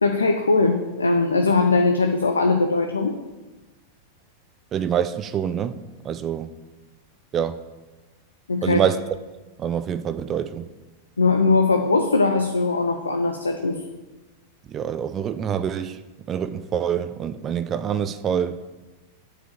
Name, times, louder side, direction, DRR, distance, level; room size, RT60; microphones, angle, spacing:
voice 1, 0.0-3.1 8.5-8.8 11.2-13.8, left 3 dB, 85° left, 0.6 m, -20 dB
voice 2, 4.7-5.8 6.0-6.5 7.3-7.6 8.6-9.0 9.6-10.7 14.7-16.0 16.3-18.6, right 8 dB, 30° right, 0.4 m, -25 dB
8.3 x 4.8 x 7.4 m
figure-of-eight pair, 95°, 0 cm